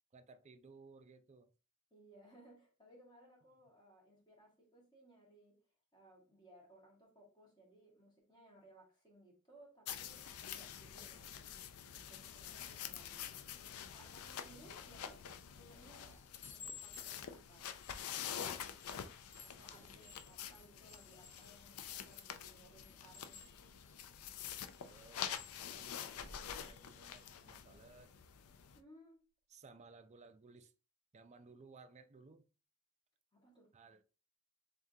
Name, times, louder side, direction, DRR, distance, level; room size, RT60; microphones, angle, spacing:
voice 1, 0.1-1.5 14.5-14.7 19.4-20.2 24.8-28.1 29.5-30.7 31.1-32.5 33.7-34.0, right 4 dB, 30° right, 0.4 m, -60 dB
voice 2, 1.9-5.6 5.9-11.5 12.1-15.2 15.5-17.7 19.4-23.4 28.7-29.3 33.3-33.7, right 1 dB, 20° left, 1.5 m, -63 dB
sound 1, 9.9-28.8, left 9 dB, 85° left, 0.4 m, -47 dB
Chime, 16.4-22.3 22.8-26.2 26.6-26.8 27.1-27.4, left 5 dB, 65° left, 1.0 m, -58 dB
sound 2, 23.4-24.3 25.2-27.6 27.9-28.0 29.6-29.7, equal, 50° left, 1.7 m, -60 dB
3.6 x 3.6 x 2.7 m
head